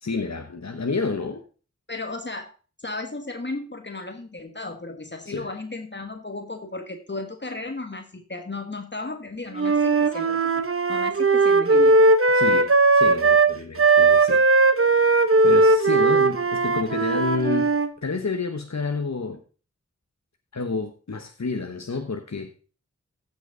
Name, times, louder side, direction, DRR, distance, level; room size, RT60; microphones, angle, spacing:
voice 1, 0.0-1.4 5.2-5.5 12.3-14.5 15.0-17.7 18.0-19.4 20.5-22.6, left 4 dB, 65° left, 1.2 m, -29 dB
voice 2, 1.9-2.5 2.8-12.0, left 2 dB, 35° left, 1.4 m, -35 dB
Wind instrument woodwind instrument, 9.5-17.9, right 3 dB, 45° right, 1.0 m, -18 dB
15.0 x 6.2 x 3.9 m
wide cardioid pair, 45°, 30 cm